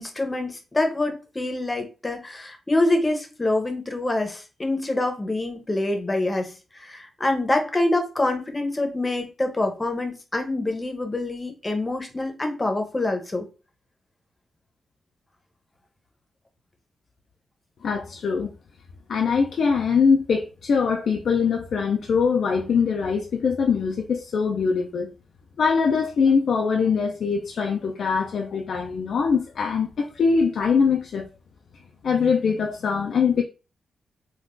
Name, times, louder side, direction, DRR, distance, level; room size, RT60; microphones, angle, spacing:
voice 1, 0.0-13.5, left 2 dB, 20° left, 0.8 m, -26 dB
voice 2, 17.8-18.5 19.1-25.1 25.6-31.3 32.0-33.4, left 5 dB, 70° left, 0.4 m, -22 dB
3.7 x 2.3 x 2.5 m
cardioid pair, 85°, 0 cm